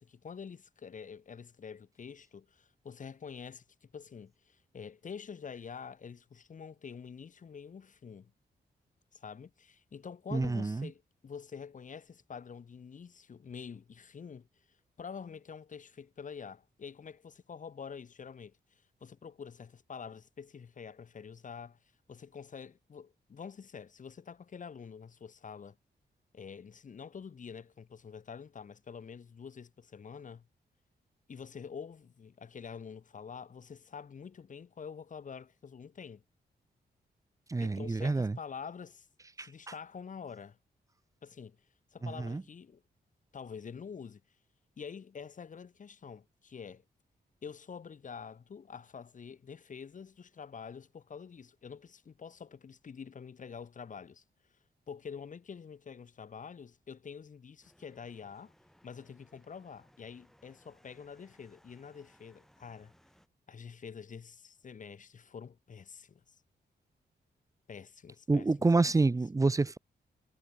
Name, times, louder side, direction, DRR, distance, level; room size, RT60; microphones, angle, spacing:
voice 1, 0.0-8.3 9.1-14.5 15.0-21.8 22.1-25.8 26.3-30.5 31.3-36.2 37.6-39.1 39.4-40.6 41.2-41.6 41.9-42.8 43.3-44.2 44.8-46.8 47.4-54.2 54.9-58.5 58.8-62.9 63.5-66.4 67.7-68.5, left 6 dB, 45° left, 3.5 m, -47 dB
voice 2, 10.3-10.9 37.5-38.4 39.4-39.5 42.0-42.4 68.3-69.8, right 3 dB, 20° right, 0.9 m, -28 dB
sound 1, 57.6-63.3, equal, ahead, 5.2 m, -65 dB
wide cardioid pair, 175°, 18 cm